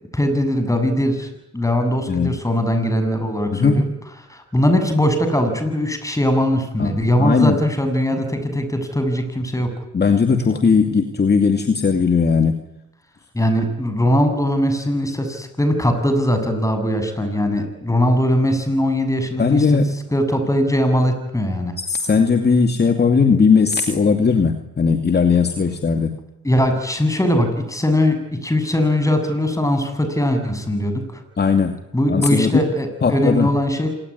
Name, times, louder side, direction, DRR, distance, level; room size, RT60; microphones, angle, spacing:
voice 1, 0.1-3.9 4.3-9.7 13.3-19.8 20.1-21.7 26.4-31.2 31.9-33.9, equal, 10° left, 7 dB, 7.4 m, -20 dB
voice 2, 3.5-3.9 6.8-7.6 8.1-8.2 9.9-12.6 19.4-20.0 21.9-26.1 31.4-31.8 32.1-32.6 33.0-33.5, left 5 dB, 35° left, 6 dB, 2.5 m, -17 dB
27.0 x 19.5 x 9.7 m, 0.87 s
cardioid pair, 90°, 30 cm